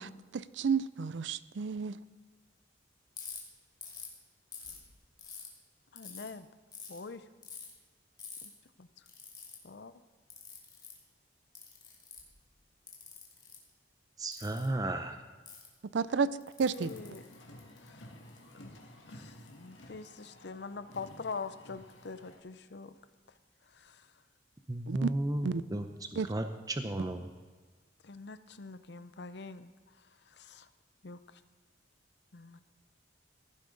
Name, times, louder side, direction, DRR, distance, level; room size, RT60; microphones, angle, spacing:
voice 1, 0.0-2.0 15.9-16.3 16.6-16.9 24.9-25.1 25.4-25.6 26.2-26.3, right 5 dB, 75° right, 16 dB, 0.5 m, -31 dB
Ratchet pawl, 3.2-3.4 3.8-4.1 4.5-5.5 6.0-6.3 6.7-7.0 7.4-7.7 8.2-8.5 9.1-9.6 10.3-11.0 11.6-12.3 12.9-13.6 14.3-14.7 15.5-15.7 16.4-17.9, left 6 dB, 25° left, 2.5 m, -46 dB
voice 2, 5.9-6.5 6.9-7.2 8.4-8.5 8.8-8.9 9.6-9.9 16.7-17.2 17.8-18.0 18.5-18.8 19.1-23.0 23.7-24.1 28.0-29.7 30.3-30.7 31.0-31.2 32.3-32.6, left 4 dB, 65° left, 12 dB, 0.7 m, -44 dB
voice 3, 14.2-15.2 24.7-25.9 26.3-27.3, right 1 dB, 20° right, 6 dB, 0.6 m, -34 dB
Car, 16.7-22.4, left 1 dB, 85° left, 2.0 m, -53 dB
15.5 x 11.5 x 4.0 m, 1.4 s
head